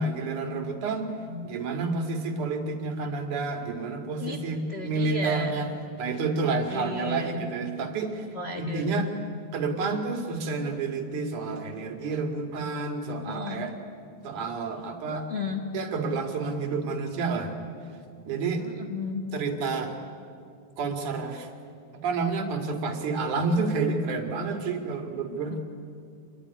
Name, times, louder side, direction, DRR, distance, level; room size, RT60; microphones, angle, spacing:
voice 1, 0.0-1.1 1.4-5.7 6.0-8.3 8.6-9.1 9.5-13.7 14.2-15.3 15.7-17.6 18.2-18.7 19.3-20.0 20.8-21.5 21.9-25.6, right 3 dB, 85° right, 5 dB, 3.6 m, -29 dB
voice 2, 1.2-1.6 4.2-4.4 4.7-5.7 6.7-7.5 8.3-9.0 13.3-13.7 15.1-15.6 18.6-19.2 25.3-25.6, left 3 dB, 30° left, 3 dB, 1.3 m, -34 dB
26.0 x 21.0 x 9.8 m, 2.4 s
omnidirectional pair, 3.4 m